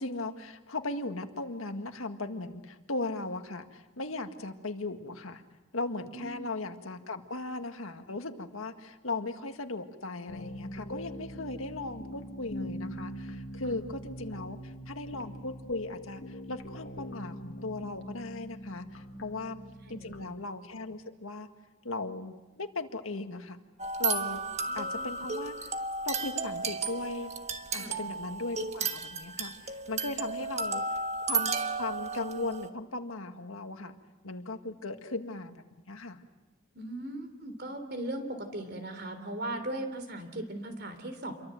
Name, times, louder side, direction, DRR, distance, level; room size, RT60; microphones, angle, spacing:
voice 1, 0.0-5.4 5.7-19.6 19.9-21.5 21.8-23.6 24.0-24.4 24.7-25.7 26.0-27.3 27.7-31.5 31.8-34.0 34.2-36.2, left 2 dB, 85° left, 7 dB, 1.8 m, -37 dB
sound 1, 10.3-20.2, equal, 60° left, 1.9 m, -42 dB
voice 2, 19.1-19.5 19.9-20.2 24.7-25.0 27.7-28.0 36.8-41.3, right 1 dB, 50° right, 8 dB, 3.4 m, -38 dB
sound 2, 23.8-32.7, right 4 dB, 30° right, 1.3 m, -33 dB
28.5 x 23.5 x 7.7 m, 1.1 s
head